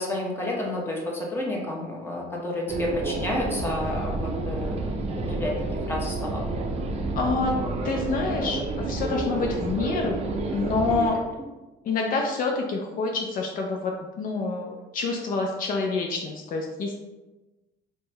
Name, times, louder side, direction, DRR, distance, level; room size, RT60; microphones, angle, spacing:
voice 1, 0.0-4.7 5.0-5.5 5.9-6.4, left 1 dB, 15° left, -2 dB, 0.9 m, -30 dB
sound 1, 2.7-11.1, right 2 dB, 40° right, 0.5 m, -29 dB
voice 2, 7.2-7.5 7.8-10.2 10.5-11.2 11.8-17.0, left 4 dB, 55° left, 1 dB, 0.5 m, -27 dB
4.4 x 2.2 x 3.2 m, 1.1 s
cardioid pair, 110°, 17 cm